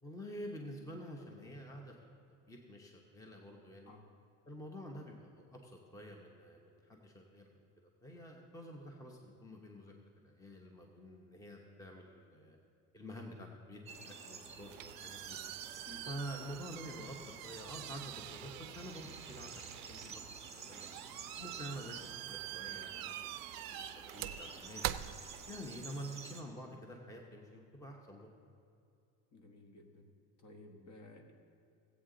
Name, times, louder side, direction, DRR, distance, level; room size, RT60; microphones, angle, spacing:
voice 1, 0.0-2.1 2.5-3.9 4.5-7.7 8.0-9.9 10.2-12.6 12.9-15.4 16.1-17.2 17.4-20.2 20.5-20.9 21.4-23.2 23.6-24.9 25.5-28.3, equal, 10° left, 1 dB, 0.8 m, -48 dB
sound 1, 13.9-26.4, right 5 dB, 15° right, 1.2 m, -51 dB
sound 2, 14.4-25.9, right 14 dB, 60° right, 0.5 m, -45 dB
voice 2, 29.3-30.1 30.4-31.3, left 2 dB, 45° left, 4 dB, 1.5 m, -55 dB
16.5 x 8.3 x 3.8 m, 2.6 s
cardioid pair, 135°, 41 cm